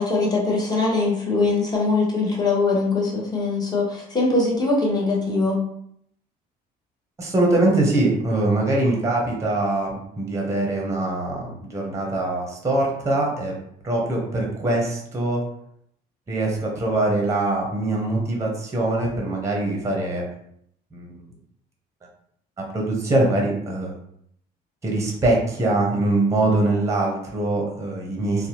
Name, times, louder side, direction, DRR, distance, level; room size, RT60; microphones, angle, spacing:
voice 1, 0.0-5.6, left 3 dB, 25° left, -2 dB, 0.8 m, -22 dB
voice 2, 7.2-13.5 13.8-15.4 16.3-20.3 20.9-21.2 22.7-23.9 24.8-28.5, right 2 dB, 15° right, 0 dB, 0.7 m, -23 dB
2.6 x 2.1 x 2.9 m, 0.70 s
cardioid pair, 110°, 17 cm